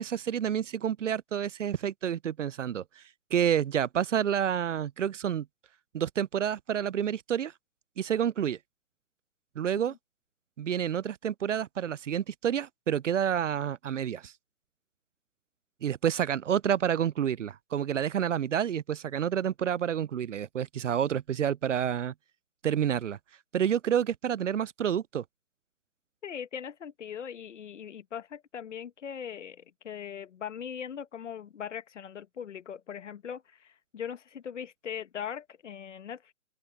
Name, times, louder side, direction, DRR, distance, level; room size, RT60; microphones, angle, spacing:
voice 1, 0.0-3.0 3.3-5.5 5.9-7.5 8.0-8.6 9.6-9.9 10.6-14.3 15.8-22.1 22.6-23.2 23.5-25.2, right 9 dB, 60° right, 0.6 m, -29 dB
voice 2, 26.2-36.3, left 8 dB, 55° left, 1.6 m, -40 dB
open air
hypercardioid pair, 155°, 43 cm